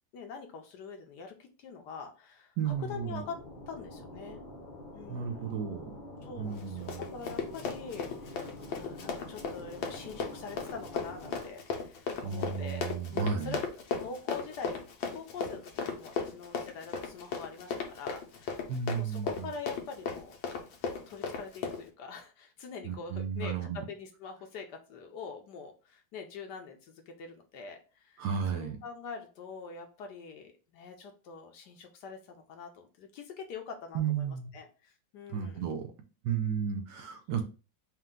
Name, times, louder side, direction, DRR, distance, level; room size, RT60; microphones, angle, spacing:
voice 1, 0.1-3.4 3.7-4.4 4.9-5.5 6.2-13.6 14.0-14.8 15.1-18.7 18.9-20.3 21.1-28.2 28.5-35.7, left 5 dB, 70° left, 5 dB, 1.1 m, -44 dB
sound 1, 2.6-11.4, left 1 dB, 50° left, 0.5 m, -47 dB
voice 2, 2.6-3.2 5.1-6.0 6.4-7.0 12.2-13.6 18.7-19.5 22.8-23.8 28.2-28.8 33.9-34.5 35.3-35.9 36.2-37.4, right 7 dB, 70° right, 4 dB, 1.2 m, -33 dB
Run, 6.5-21.8, left 5 dB, 90° left, 1.6 m, -36 dB
4.4 x 2.4 x 3.6 m, 0.34 s
omnidirectional pair, 2.1 m